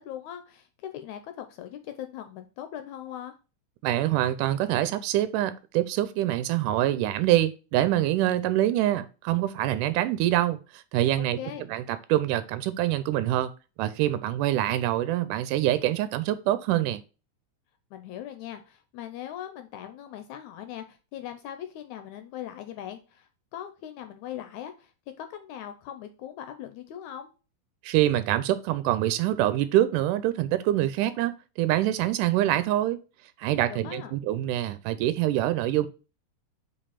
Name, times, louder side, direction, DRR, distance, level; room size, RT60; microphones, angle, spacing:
voice 1, 0.0-3.3 11.2-11.6 17.9-24.9 25.2-27.3 33.7-34.1, left 11 dB, 80° left, 1.9 m, -40 dB
voice 2, 3.8-11.4 11.7-13.5 13.8-17.0 27.8-31.3 31.6-33.0 33.4-35.9, right 13 dB, 90° right, 2.1 m, -25 dB
5.1 x 4.7 x 5.7 m
omnidirectional pair, 3.6 m